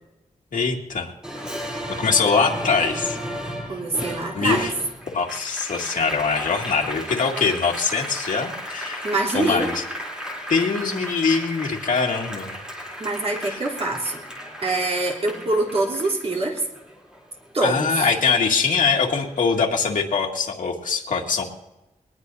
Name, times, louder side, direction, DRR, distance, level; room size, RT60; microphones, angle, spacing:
voice 1, 0.5-1.1 1.9-3.2 4.3-4.7 5.1-9.1 9.3-9.8 10.5-12.5 13.4-13.6 17.6-21.4, left 5 dB, 80° left, -1 dB, 2.2 m, -23 dB
Applause, 1.2-18.0 18.4-19.6, equal, 5° right, 3.4 m, -34 dB
voice 2, 3.7-4.7 9.0-9.7 13.0-14.2 14.6-16.6 17.5-18.1, right 2 dB, 45° right, -3 dB, 3.4 m, -24 dB
21.0 x 20.0 x 2.7 m, 0.99 s
wide cardioid pair, 175°, 13 cm